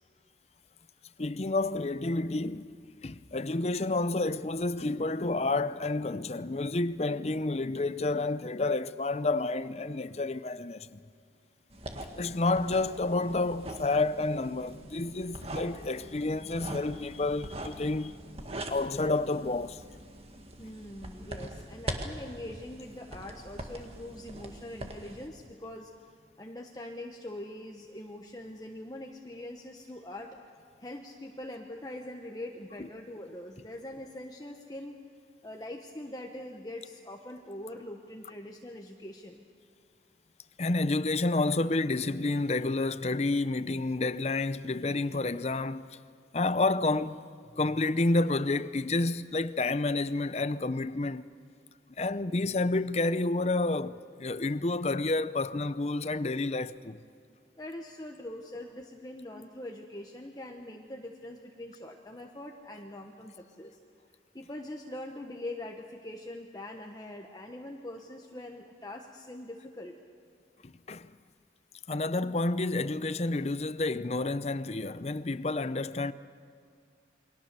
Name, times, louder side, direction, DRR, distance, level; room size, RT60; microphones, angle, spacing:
voice 1, 1.2-2.7 3.0-11.0 12.2-18.2 18.7-19.8 32.8-32.9 40.6-46.0 46.3-47.2 47.6-51.3 52.0-57.0 70.6-71.1 71.9-76.1, left 2 dB, 35° left, 0.6 m, -29 dB
sound 1, 11.7-25.3, right 1 dB, 35° right, 1.9 m, -42 dB
voice 2, 20.6-25.9 26.4-30.3 30.8-35.0 35.4-39.5 57.6-63.8 64.3-69.9, left 1 dB, 20° left, 1.2 m, -43 dB
29.0 x 23.0 x 6.8 m
head